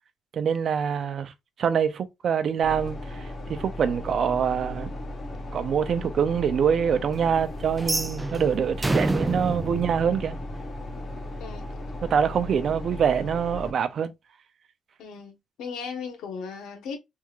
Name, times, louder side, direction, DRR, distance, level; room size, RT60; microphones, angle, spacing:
voice 1, 0.3-1.3 1.6-4.9 5.5-10.4 12.0-14.1, right 7 dB, 60° right, 0.6 m, -25 dB
sound 1, 2.6-13.7, left 1 dB, 45° left, 1.0 m, -36 dB
sound 2, 7.8-10.9, right 2 dB, 20° right, 0.4 m, -28 dB
voice 2, 15.0-17.0, left 5 dB, 85° left, 1.0 m, -37 dB
3.5 x 3.0 x 2.4 m
cardioid pair, 90°, 0 cm